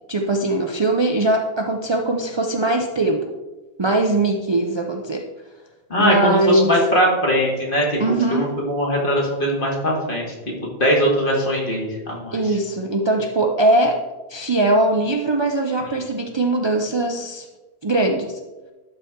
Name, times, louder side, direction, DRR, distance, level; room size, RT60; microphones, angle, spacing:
voice 1, 0.1-3.3 3.8-5.3 6.0-6.8 8.0-8.5 12.3-14.0 14.3-17.5 17.8-18.4, right 2 dB, 35° right, 2 dB, 0.4 m, -20 dB
voice 2, 5.9-12.6, equal, 55° left, -2 dB, 1.9 m, -21 dB
11.5 x 4.3 x 3.6 m, 1.2 s
omnidirectional pair, 1.1 m